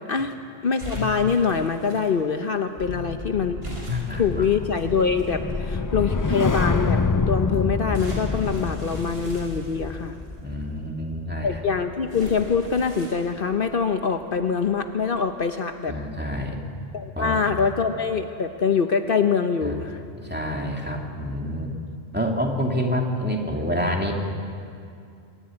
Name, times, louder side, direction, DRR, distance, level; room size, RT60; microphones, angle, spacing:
voice 1, 0.6-3.6 4.1-7.0 7.3-10.2 11.4-16.0 16.9-20.0, left 6 dB, 55° left, 7 dB, 1.0 m, -24 dB
sound 1, 0.8-2.0 3.6-5.3 6.0-6.1 7.9-10.3 12.1-13.3, left 2 dB, 65° right, 5.8 m, -36 dB
sound 2, 2.8-13.2 13.5-13.8, left 4 dB, 30° left, 0.4 m, -28 dB
voice 2, 2.8-3.4 3.9-4.5 10.4-11.6 15.9-16.7 17.1-17.7 19.6-21.7 22.1-24.1, equal, 10° right, 0 dB, 2.5 m, -28 dB
25.0 x 14.5 x 9.8 m, 2.4 s
omnidirectional pair, 1.1 m